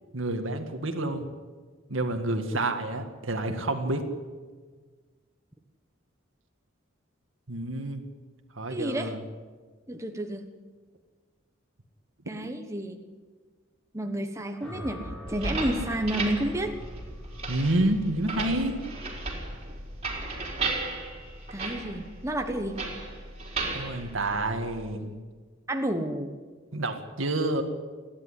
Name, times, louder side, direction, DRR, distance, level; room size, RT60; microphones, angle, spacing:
voice 1, 0.1-1.3 1.9-4.1 7.5-8.0 8.6-9.2 17.5-18.8 23.7-25.1 26.7-27.6, right 2 dB, 80° right, 5 dB, 1.9 m, -29 dB
voice 2, 8.7-9.1 9.9-10.4 12.3-13.0 13.9-16.8 21.5-22.8 25.7-26.3, right 1 dB, 15° right, 5 dB, 1.2 m, -30 dB
sound 1, 14.6-22.9, equal, 5° left, 6.7 m, -45 dB
sound 2, 15.3-24.9, right 3 dB, 30° right, 4.3 m, -35 dB
29.5 x 11.0 x 9.8 m, 1.5 s
head